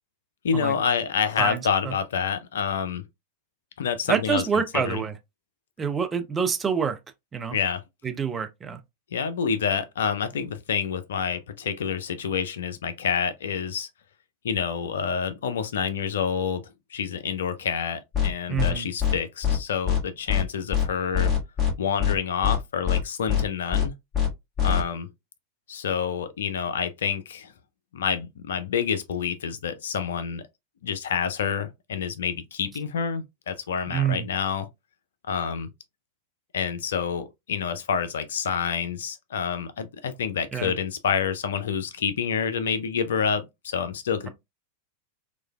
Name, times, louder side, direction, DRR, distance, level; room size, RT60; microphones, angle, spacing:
voice 1, 0.4-3.0 3.8-5.0 7.5-7.8 9.1-13.9 14.4-16.6 16.9-21.3 21.8-23.9 24.6-25.1 25.7-27.5 27.9-30.4 30.8-34.7 35.3-35.7 36.5-44.3, left 7 dB, 65° left, 0.4 m, -28 dB
voice 2, 1.4-1.9 4.1-5.2 5.8-7.0 7.3-7.6 8.0-8.8 18.5-18.9 33.9-34.3 40.5-40.7, right 7 dB, 20° right, 0.4 m, -27 dB
sound 1, 18.1-18.3 18.6-18.7 19.0-19.1 19.4-19.6 19.9-20.0 20.3-20.4 20.7-20.9 21.1-21.7 22.0-22.1 22.4-22.6 22.9-23.0 23.3-23.4 23.7-23.9 24.1-24.3 24.6-24.8, left 8 dB, 20° left, 1.6 m, -23 dB
3.1 x 2.3 x 2.2 m
figure-of-eight pair, 90°, 0 cm